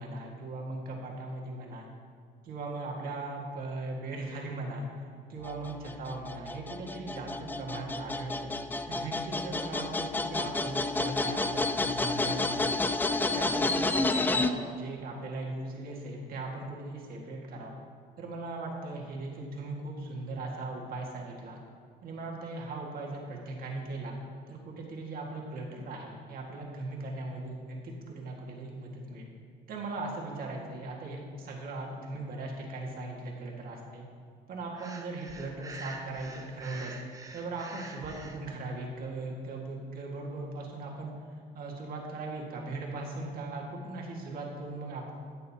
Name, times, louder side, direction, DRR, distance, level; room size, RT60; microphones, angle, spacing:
voice 1, 0.0-1.9 2.4-8.5 8.9-12.8 13.3-17.7 18.2-21.6 22.0-24.2 24.5-29.3 29.7-34.1 34.5-37.0 37.3-41.1 41.5-45.1, right 2 dB, 60° right, -1 dB, 1.8 m, -39 dB
sound 1, 5.4-14.5, left 2 dB, 10° left, 0.3 m, -30 dB
Breathing, 34.7-38.4, right 3 dB, 20° right, 0.8 m, -45 dB
14.0 x 6.5 x 2.9 m, 2.2 s
cardioid pair, 110°, 17 cm